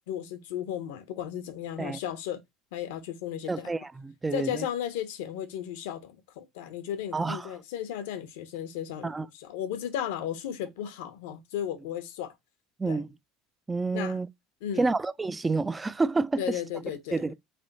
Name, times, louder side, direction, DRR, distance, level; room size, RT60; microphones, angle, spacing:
voice 1, 0.1-2.4 2.7-3.7 4.3-9.1 9.4-12.3 12.9-13.0 13.9-14.2 14.6-14.9 16.4-17.2, left 10 dB, 85° left, 0.8 m, -35 dB
voice 2, 3.5-4.7 7.1-7.5 9.0-9.3 12.8-13.1 13.7-14.3 14.8-16.6 17.1-17.3, right 3 dB, 15° right, 0.3 m, -29 dB
3.5 x 3.4 x 3.9 m
supercardioid pair, 110°, 0 cm